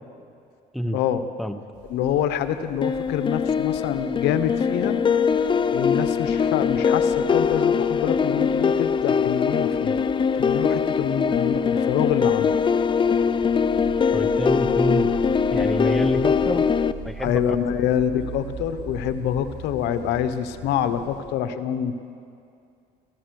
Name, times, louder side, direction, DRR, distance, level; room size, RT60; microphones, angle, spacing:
voice 1, 0.9-1.3 1.9-5.0 5.7-10.0 10.3-12.6 16.5-16.6 17.2-22.0, left 9 dB, 90° left, 10 dB, 1.1 m, -26 dB
sound 1, 1.7-21.2, right 6 dB, 60° right, 6.1 m, -42 dB
sound 2, 2.8-16.9, left 6 dB, 30° left, 0.6 m, -22 dB
voice 2, 14.1-15.1 15.5-16.6 17.0-17.6, equal, ahead, 8 dB, 1.0 m, -27 dB
27.5 x 15.0 x 6.5 m, 2.4 s
cardioid pair, 110°, 17 cm